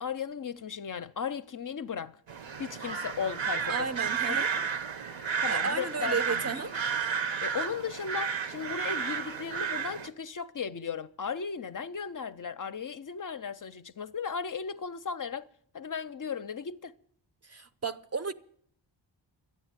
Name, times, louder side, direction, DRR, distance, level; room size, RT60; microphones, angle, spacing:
voice 1, 0.0-2.1 2.6-3.9 4.3-4.6 5.4-6.5 7.4-15.5 15.7-17.0, left 6 dB, 45° left, 0.5 m, -36 dB
sound 1, 2.3-10.1, right 7 dB, 80° right, 1.0 m, -32 dB
voice 2, 3.7-4.5 5.5-6.7 17.4-18.3, right 4 dB, 35° right, 0.6 m, -33 dB
12.5 x 9.3 x 8.9 m
wide cardioid pair, 95°, 45 cm